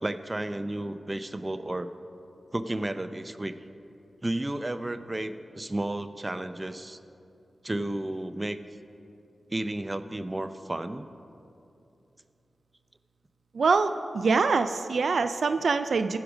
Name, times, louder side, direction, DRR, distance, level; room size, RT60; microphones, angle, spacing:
voice 1, 0.0-1.9 2.5-3.6 4.2-7.0 7.6-8.6 9.5-11.1, right 1 dB, 25° right, 10 dB, 0.5 m, -32 dB
voice 2, 13.5-16.2, right 4 dB, 75° right, 10 dB, 0.3 m, -24 dB
15.0 x 5.1 x 6.1 m, 2.7 s
cardioid pair, 45°, 0 cm